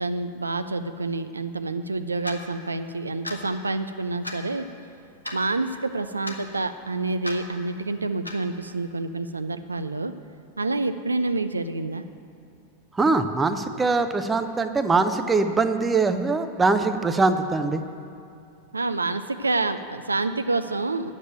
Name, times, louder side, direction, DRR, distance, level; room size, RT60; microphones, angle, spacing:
voice 1, 0.0-4.7 5.3-10.1 10.6-12.0 18.7-21.1, right 3 dB, 80° right, 10 dB, 0.4 m, -28 dB
Clock, 2.2-2.4 3.2-3.4 4.2-4.4 5.2-5.4 6.2-6.4 7.2-7.4 8.2-8.4, left 1 dB, 85° left, 1.1 m, -34 dB
voice 2, 12.9-17.8, right 3 dB, 15° right, 9 dB, 0.7 m, -22 dB
9.3 x 7.4 x 9.0 m, 2.6 s
figure-of-eight pair, 90°, 0 cm